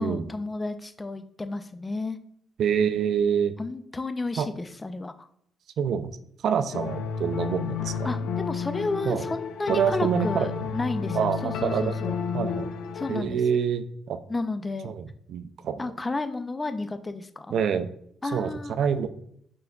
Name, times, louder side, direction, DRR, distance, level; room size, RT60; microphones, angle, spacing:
voice 1, 0.0-2.2 3.6-5.3 6.7-6.8 8.0-12.1 12.9-13.4 14.3-15.0 15.8-17.5 18.2-18.7, left 3 dB, 20° left, 10 dB, 0.4 m, -32 dB
voice 2, 2.6-3.5 4.4-4.5 5.8-6.2 6.4-7.9 9.1-9.2 9.7-10.7 11.1-11.9 12.3-12.7 13.1-14.2 14.8-15.9 17.5-17.9 18.3-18.5 18.8-19.1, right 7 dB, 70° right, 10 dB, 0.3 m, -26 dB
sound 1, 6.7-13.2, left 6 dB, 90° left, 0.4 m, -31 dB
5.5 x 3.7 x 2.3 m, 0.69 s
cardioid pair, 90°, 0 cm